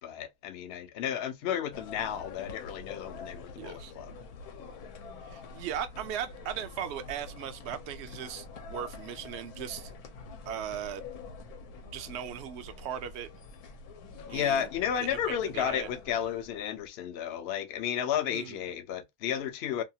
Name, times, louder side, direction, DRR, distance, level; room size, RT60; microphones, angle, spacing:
voice 1, 0.0-4.2 14.3-19.8, left 9 dB, 60° left, 0.7 m, -32 dB
sound 1, 1.7-16.9, left 4 dB, 85° left, 1.1 m, -46 dB
voice 2, 3.5-3.9 5.2-9.9 10.5-11.0 11.9-13.3 14.3-14.7 15.1-15.9 18.3-18.6, right 9 dB, 70° right, 0.6 m, -38 dB
2.7 x 2.3 x 2.7 m
omnidirectional pair, 1.6 m